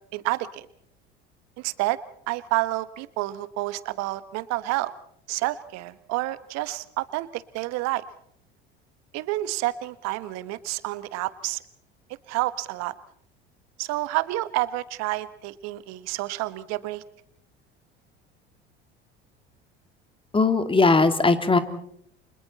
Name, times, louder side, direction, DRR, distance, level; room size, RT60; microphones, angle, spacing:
voice 1, 0.1-0.7 1.6-2.0 2.3-4.9 5.3-8.0 9.1-11.6 12.3-12.9 13.8-17.0, right 18 dB, 55° right, 15 dB, 1.4 m, -29 dB
voice 2, 20.3-21.6, left 3 dB, 15° left, 10 dB, 2.3 m, -19 dB
29.5 x 26.5 x 4.2 m, 0.66 s
figure-of-eight pair, 70°, 31 cm